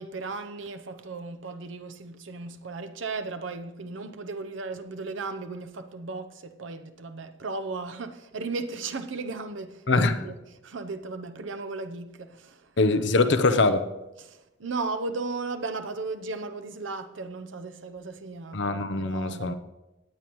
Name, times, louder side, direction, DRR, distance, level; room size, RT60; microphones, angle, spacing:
voice 1, 0.0-12.8 13.2-13.3 14.2-18.7 19.0-19.5, right 3 dB, 80° right, 0.8 m, -36 dB
voice 2, 9.9-10.2 12.8-13.9 18.5-19.5, left 3 dB, 65° left, 0.7 m, -23 dB
18.0 x 8.7 x 3.1 m
head